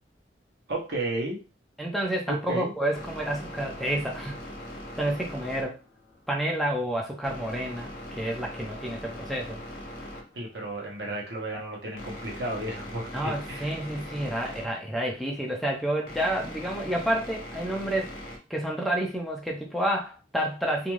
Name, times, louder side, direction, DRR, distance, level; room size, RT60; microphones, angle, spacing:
voice 1, 0.7-1.4 2.3-2.7 10.3-13.7, right 1 dB, 65° right, -1 dB, 0.9 m, -33 dB
voice 2, 1.8-4.4 5.0-5.8 6.3-9.6 13.1-18.1 18.5-20.9, right 1 dB, ahead, 0 dB, 0.4 m, -29 dB
sound 1, 2.9-18.4, left 1 dB, 55° left, 0.9 m, -41 dB
2.5 x 2.2 x 3.1 m, 0.31 s
head